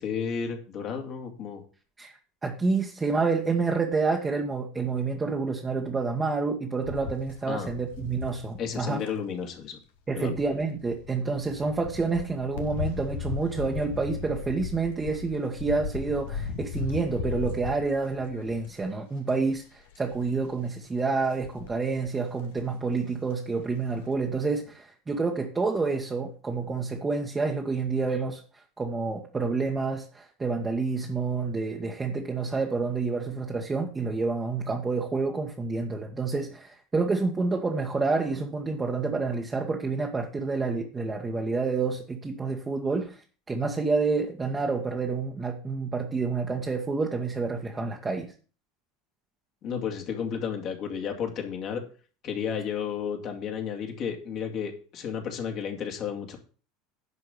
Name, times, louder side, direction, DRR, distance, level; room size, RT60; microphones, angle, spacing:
voice 1, 0.0-1.6 7.5-7.7 8.6-9.8 10.1-10.4 49.6-51.8 52.2-56.4, left 7 dB, 45° left, 3 dB, 2.6 m, -32 dB
voice 2, 2.0-9.0 10.1-28.4 28.8-43.2 43.5-48.3, right 4 dB, 20° right, 0 dB, 1.6 m, -28 dB
sound 1, 6.8-9.1 10.3-18.9 19.3-19.6 19.9-20.4 21.2-22.1 22.6-22.7 22.9-23.0, left 6 dB, 65° left, 1.5 m, -37 dB
11.0 x 5.2 x 6.7 m, 0.39 s
figure-of-eight pair, 75°, 0 cm